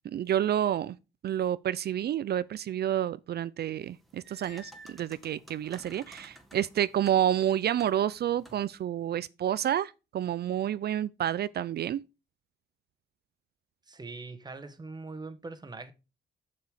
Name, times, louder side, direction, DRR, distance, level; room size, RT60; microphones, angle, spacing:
voice 1, 0.1-1.0 1.2-12.0, right 10 dB, 55° right, 0.5 m, -29 dB
sound 1, 3.8-8.8, equal, ahead, 1.8 m, -54 dB
voice 2, 13.9-15.9, right 3 dB, 20° right, 1.4 m, -42 dB
7.1 x 6.6 x 5.0 m
cardioid pair, 90°, 20 cm